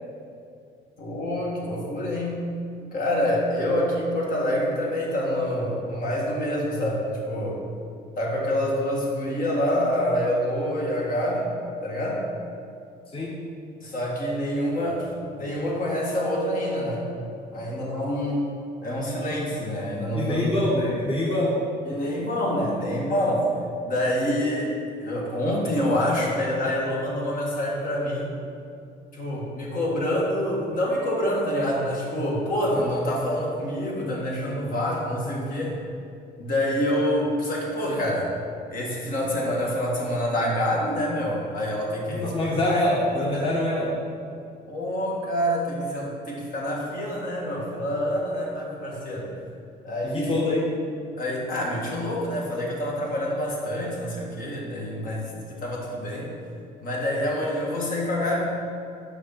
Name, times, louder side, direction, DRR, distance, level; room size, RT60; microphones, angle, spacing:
voice 1, 1.0-2.5 2.9-7.6 8.2-11.5 11.8-12.2 13.8-15.1 15.3-17.1 17.5-18.5 18.8-20.6 21.8-23.5 23.8-24.7 25.0-28.3 29.1-35.8 36.4-38.3 38.7-43.5 44.7-49.3 49.8-50.4 51.2-56.3 56.8-58.5, equal, 55° left, -3 dB, 1.8 m, -26 dB
voice 2, 20.1-21.6 37.9-38.0 42.1-44.0 50.1-50.6, left 1 dB, 35° left, -5 dB, 1.4 m, -25 dB
6.3 x 5.2 x 5.8 m, 2.4 s
cardioid pair, 110°, 17 cm